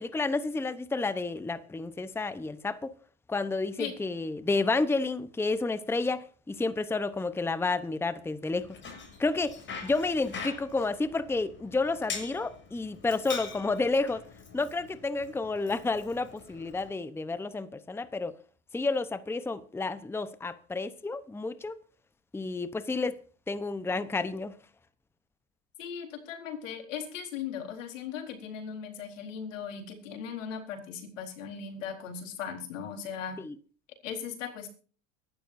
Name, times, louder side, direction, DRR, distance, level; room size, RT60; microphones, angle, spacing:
voice 1, 0.0-2.9 3.3-8.7 9.2-14.2 14.5-18.3 18.7-21.8 22.3-23.1 23.5-24.6 33.4-33.5, left 3 dB, 5° left, 0.8 m, -30 dB
Bicycle, 8.6-16.9, left 5 dB, 30° left, 6.9 m, -43 dB
voice 2, 25.8-33.4 34.0-34.7, left 7 dB, 85° left, 4.2 m, -38 dB
23.0 x 12.0 x 2.7 m
supercardioid pair, 105°, 37 cm